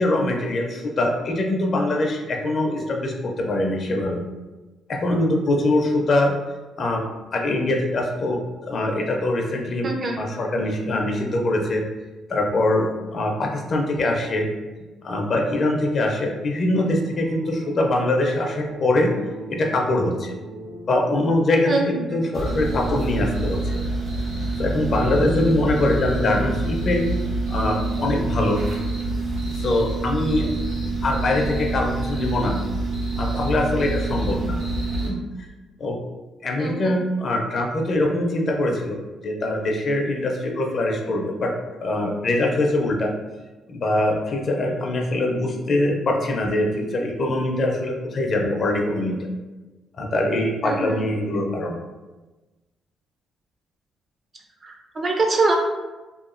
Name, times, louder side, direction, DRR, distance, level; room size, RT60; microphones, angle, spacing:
voice 1, 0.0-4.2 4.9-6.3 6.8-7.0 7.3-9.9 10.2-11.9 12.3-14.5 15.0-19.1 19.5-20.3 20.9-21.7 22.1-23.6 24.6-27.1 27.5-28.6 29.5-30.5 31.0-32.6 33.2-34.6 35.0-35.2 35.8-36.0 36.4-39.0 39.2-41.5 41.8-43.1 43.7-49.2 50.0-51.8, left 1 dB, 50° left, 1 dB, 0.5 m, -23 dB
voice 2, 9.8-10.2 21.6-22.1 36.6-37.0 50.6-51.0 54.6-55.6, right 3 dB, 40° right, 2 dB, 0.5 m, -24 dB
sound 1, 17.0-23.2, right 1 dB, 85° right, 0.9 m, -39 dB
sound 2, 22.3-35.1, right 2 dB, 60° right, 1.1 m, -26 dB
2.8 x 2.3 x 2.5 m, 1.2 s
cardioid pair, 90°, 0 cm